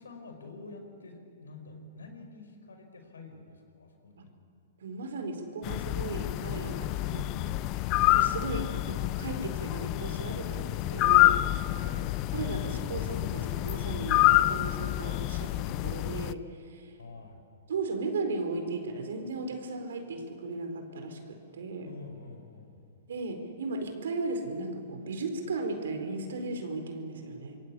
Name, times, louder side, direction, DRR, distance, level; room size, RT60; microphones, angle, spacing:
voice 1, 0.0-4.3 7.1-7.7 11.5-12.1 17.0-17.4 21.9-22.8, left 3 dB, 90° left, 6 dB, 5.2 m, -47 dB
voice 2, 4.8-7.3 8.1-11.4 12.3-16.9 17.7-21.9 23.1-27.6, right 3 dB, 75° right, 6 dB, 4.6 m, -36 dB
sound 1, 5.6-16.3, left 16 dB, 40° left, 0.7 m, -27 dB
26.0 x 23.0 x 8.6 m, 2.4 s
hypercardioid pair, 125°, 0 cm